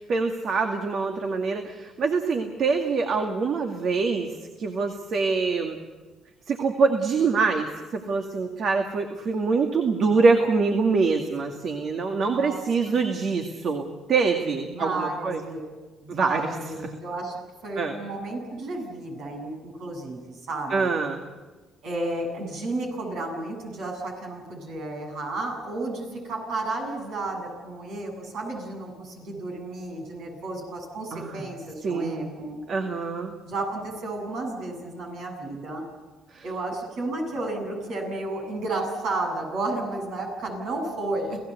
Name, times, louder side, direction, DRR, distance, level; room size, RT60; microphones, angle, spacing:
voice 1, 0.0-4.3 4.6-5.8 6.5-7.7 7.9-15.4 16.1-16.4 17.8-17.9 20.7-21.2 31.1-31.4 31.8-32.3 32.7-33.3 36.3-36.4, right 4 dB, 60° right, 4 dB, 2.2 m, -24 dB
voice 2, 12.3-13.0 14.5-15.6 16.0-20.9 21.8-32.6 33.5-35.8 36.4-41.4, right 2 dB, 75° right, 1 dB, 8.0 m, -32 dB
29.5 x 16.5 x 8.2 m, 1.3 s
supercardioid pair, 75°, 0 cm